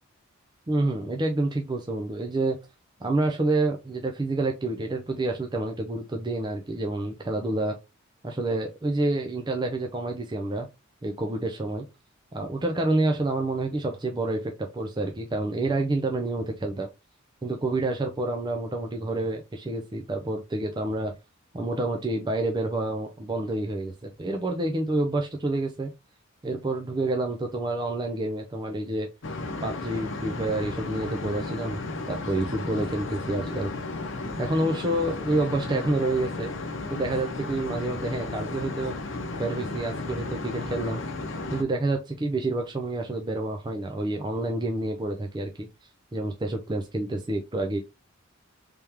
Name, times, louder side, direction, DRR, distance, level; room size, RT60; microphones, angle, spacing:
voice 1, 0.7-2.6 3.0-7.8 8.2-10.7 11.0-11.8 12.3-16.9 17.4-21.1 21.5-25.9 26.4-29.1 29.6-31.8 32.1-33.7 34.4-36.5 36.9-39.0 39.4-41.0 41.5-45.7 46.1-47.8, right 2 dB, 20° right, 3 dB, 0.4 m, -28 dB
sound 1, 29.2-41.6, left 2 dB, 60° left, 0.7 m, -34 dB
3.5 x 3.3 x 2.9 m, 0.24 s
head